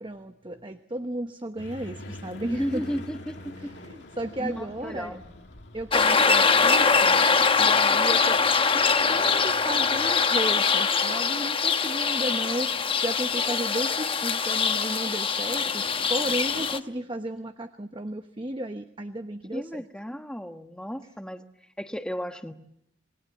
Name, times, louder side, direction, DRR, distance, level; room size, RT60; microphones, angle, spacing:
voice 1, 0.0-2.9 3.6-5.2 5.7-7.2 7.6-8.4 8.7-19.8, right 1 dB, 25° right, 7 dB, 1.0 m, -34 dB
sound 1, 1.6-10.1, left 1 dB, 65° left, 2.5 m, -46 dB
voice 2, 2.5-3.8 4.4-5.2 19.5-21.4 21.8-22.5, equal, 5° left, 7 dB, 1.3 m, -34 dB
sound 2, 5.9-16.8, left 5 dB, 30° left, 1.0 m, -23 dB
27.5 x 21.0 x 8.4 m, 0.77 s
head